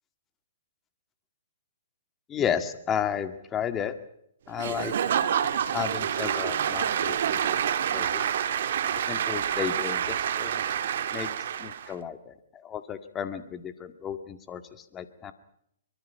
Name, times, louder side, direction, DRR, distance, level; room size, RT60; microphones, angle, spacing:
voice 1, 2.3-4.0 4.5-4.9 5.7-7.6 7.9-8.2 9.1-10.6 11.1-15.3, left 8 dB, 20° left, 9 dB, 2.0 m, -33 dB
Applause / Crowd, 4.6-11.9, right 9 dB, 60° right, 1.9 m, -28 dB
24.0 x 23.5 x 5.8 m, 0.74 s
hypercardioid pair, 125°, 0 cm